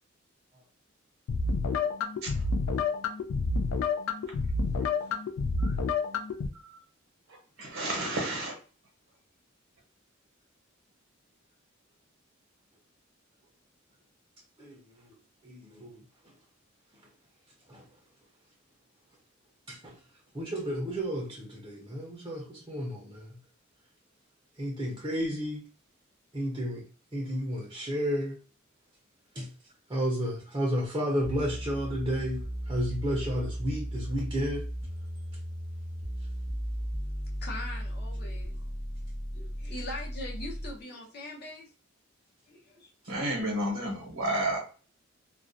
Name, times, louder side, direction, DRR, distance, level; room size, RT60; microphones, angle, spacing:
sound 1, 1.3-6.5, left 4 dB, 85° left, 0.3 m, -29 dB
voice 1, 7.6-8.6 43.1-44.6, right 1 dB, 75° right, 0.7 m, -31 dB
voice 2, 14.6-15.1 15.4-16.0 17.7-17.8 19.7-20.0 20.3-23.4 24.6-25.6 26.3-26.9 27.1-28.4 29.3-29.5 29.9-34.7, equal, 20° right, 0.5 m, -32 dB
sound 2, 31.2-40.8, equal, 25° left, 0.9 m, -36 dB
voice 3, 37.4-38.6 39.3-41.7 42.5-42.9, left 1 dB, 55° left, 0.8 m, -41 dB
2.3 x 2.1 x 2.5 m
head